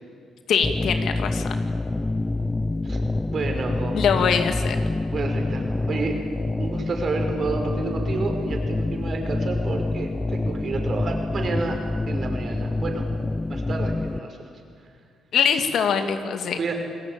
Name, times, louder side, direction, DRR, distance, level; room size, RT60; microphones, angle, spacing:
voice 1, 0.5-1.6 3.9-4.8 15.3-16.6, left 7 dB, 70° left, 7 dB, 2.3 m, -23 dB
sound 1, 0.6-14.2, left 2 dB, 15° left, 0.6 m, -27 dB
voice 2, 3.3-4.0 5.1-6.2 6.6-11.8 12.1-13.1 13.5-14.6 16.6-16.7, right 3 dB, 50° right, 3 dB, 5.7 m, -30 dB
28.5 x 19.5 x 9.0 m, 2.3 s
cardioid pair, 90°, 0 cm